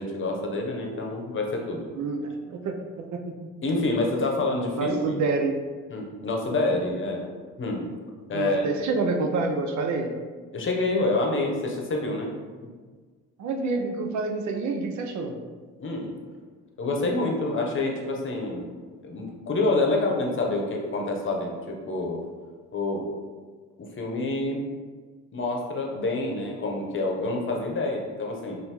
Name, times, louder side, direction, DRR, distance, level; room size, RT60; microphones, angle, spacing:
voice 1, 0.0-1.8 3.6-5.2 5.9-7.3 7.6-7.9 8.3-8.6 10.5-12.3 15.8-16.1 16.8-18.7 19.0-22.2 22.7-23.1 23.8-24.7 25.3-28.6, left 2 dB, 40° left, 0 dB, 0.9 m, -27 dB
voice 2, 2.0-3.3 4.7-5.5 8.3-10.2 13.4-15.3, right 3 dB, 70° right, 4 dB, 0.6 m, -28 dB
5.4 x 2.6 x 3.0 m, 1.5 s
cardioid pair, 90°, 30 cm